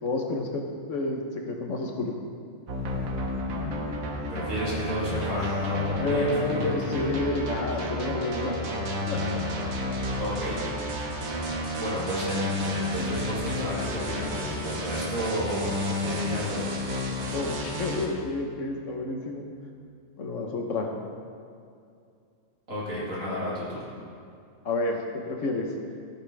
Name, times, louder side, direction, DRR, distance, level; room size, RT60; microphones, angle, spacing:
voice 1, 0.0-2.1 6.0-8.6 9.1-9.4 17.3-19.5 20.2-20.9 24.6-25.7, left 2 dB, 70° left, 2 dB, 1.3 m, -30 dB
sound 1, 2.7-9.1, right 1 dB, 35° right, 2.5 m, -49 dB
sound 2, 2.7-18.1, left 1 dB, 90° right, 1.5 m, -31 dB
voice 2, 4.3-7.2 10.2-10.6 11.8-16.8 22.7-23.9, left 1 dB, 75° right, -7 dB, 2.9 m, -32 dB
14.5 x 5.9 x 3.4 m, 2.4 s
omnidirectional pair, 1.4 m